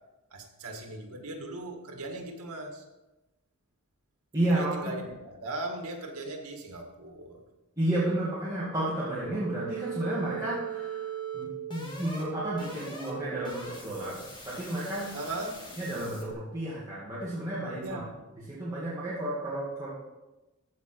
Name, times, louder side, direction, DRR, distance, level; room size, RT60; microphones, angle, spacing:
voice 1, 0.3-2.8 4.5-5.1 5.4-7.4 15.1-15.7 17.8-18.2, right 2 dB, 80° right, 3 dB, 1.8 m, -38 dB
voice 2, 4.3-4.7 7.8-11.1 11.3-15.1 15.8-18.0 18.4-19.9, right 1 dB, 15° right, -9 dB, 2.3 m, -32 dB
sound 1, 9.2-16.3, right 7 dB, 20° left, 2.1 m, -39 dB
14.5 x 5.0 x 4.6 m, 1.0 s
head